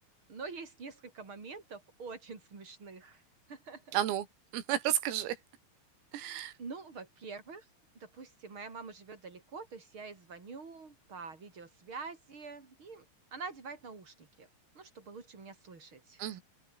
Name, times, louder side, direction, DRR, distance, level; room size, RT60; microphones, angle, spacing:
voice 1, 0.3-3.2 3.5-4.0 6.6-7.6 8.0-13.1 13.3-14.5 14.7-16.2, right 4 dB, 25° right, 4.7 m, -46 dB
voice 2, 3.9-4.3 4.5-5.4 6.1-6.5 16.2-16.4, right 12 dB, 90° right, 5.0 m, -32 dB
open air
omnidirectional pair, 5.9 m